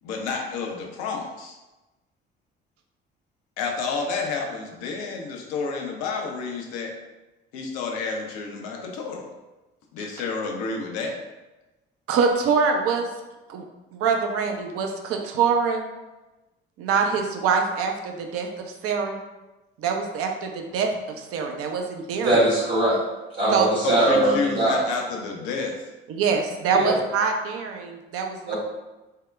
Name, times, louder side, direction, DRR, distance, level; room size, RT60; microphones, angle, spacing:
voice 1, 0.0-1.6 3.6-6.9 7.5-9.3 9.9-11.2 23.8-25.7, left 4 dB, 65° left, 1 dB, 0.5 m, -30 dB
voice 2, 12.1-13.1 13.5-13.6 13.9-15.8 16.8-18.5 18.8-19.2 19.8-22.4 23.5-23.7 26.1-28.6, right 5 dB, 50° right, 4 dB, 0.5 m, -24 dB
voice 3, 22.2-23.0 23.4-24.9 26.7-26.9 28.5-28.6, right 1 dB, 90° right, -12 dB, 1.2 m, -21 dB
3.5 x 2.1 x 2.2 m, 1.1 s
figure-of-eight pair, 45°, 29 cm